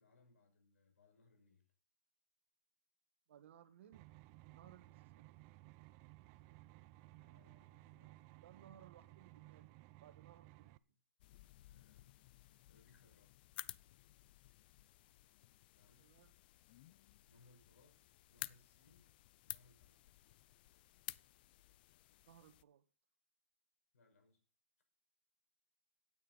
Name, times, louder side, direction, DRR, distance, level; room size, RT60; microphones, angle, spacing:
voice 1, 0.0-1.6 4.5-4.8 7.1-8.1 10.8-10.9 11.6-12.1 12.7-13.3 15.7-16.1 17.3-19.1 19.4-20.2 23.9-24.4, left 3 dB, 85° left, 5.8 m, -70 dB
voice 2, 3.3-4.1 4.5-5.2 8.4-10.7 16.0-16.3 22.3-22.8, right 10 dB, 60° right, 1.7 m, -62 dB
sound 1, 3.9-10.8, right 19 dB, 30° right, 0.6 m, -59 dB
sound 2, 11.2-22.6, left 16 dB, 45° left, 0.5 m, -54 dB
16.5 x 9.5 x 4.1 m
hypercardioid pair, 145°, 7 cm